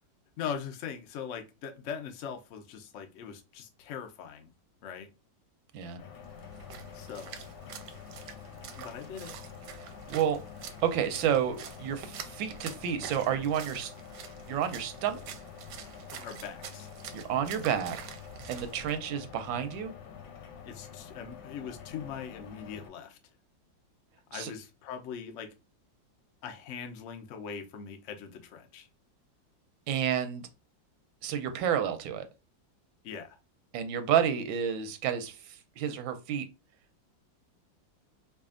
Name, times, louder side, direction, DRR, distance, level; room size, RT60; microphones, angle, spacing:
voice 1, 0.4-4.5 4.8-5.1 6.9-7.4 8.8-9.4 16.2-16.9 20.6-23.2 24.3-25.5 26.4-28.9 33.0-33.4, left 7 dB, 70° left, 0.7 m, -41 dB
sound 1, 6.0-22.9, left 7 dB, 90° left, 1.4 m, -47 dB
Splash splatter, 6.2-19.0, right 8 dB, 75° right, 1.1 m, -47 dB
voice 2, 9.8-10.4 10.8-13.9 14.5-15.2 17.1-18.0 18.5-19.9 24.3-24.5 29.9-30.5 31.2-32.3 33.7-36.4, right 9 dB, 90° right, 1.4 m, -30 dB
4.9 x 2.4 x 2.5 m
omnidirectional pair, 2.1 m